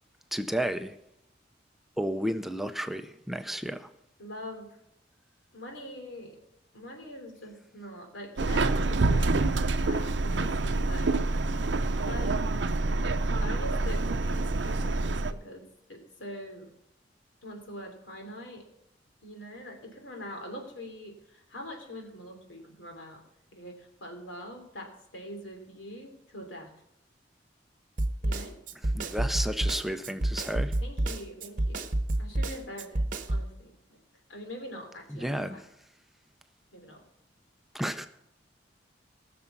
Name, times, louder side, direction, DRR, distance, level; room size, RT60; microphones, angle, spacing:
voice 1, 0.3-0.9 2.0-3.9 28.9-30.8 35.1-35.6 37.7-38.1, equal, ahead, 8 dB, 0.5 m, -32 dB
voice 2, 4.2-4.8 5.5-6.4 6.7-11.2 12.0-12.4 13.4-15.6 15.9-16.7 17.4-18.6 19.2-23.2 23.5-26.7 28.2-28.6 30.8-31.9 32.2-33.7 34.3-35.6 36.7-37.0, equal, 90° left, 3 dB, 3.1 m, -43 dB
Subway metro underground, 8.4-15.3, right 2 dB, 70° right, 0.6 m, -27 dB
Snare drum, 28.0-33.5, right 1 dB, 45° right, 0.9 m, -29 dB
18.0 x 6.8 x 6.0 m, 0.79 s
head